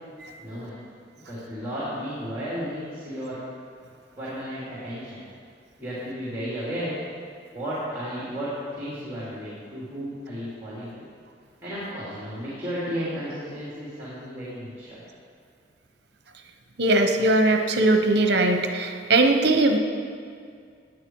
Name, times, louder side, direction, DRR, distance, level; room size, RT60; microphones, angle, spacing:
voice 1, 0.4-0.8 1.3-3.4 4.2-5.2 5.8-7.0 7.5-11.0 11.6-15.0, equal, 10° right, -9 dB, 3.1 m, -33 dB
voice 2, 16.8-19.8, right 2 dB, 60° right, 5 dB, 1.0 m, -20 dB
16.0 x 10.0 x 4.7 m, 2.2 s
head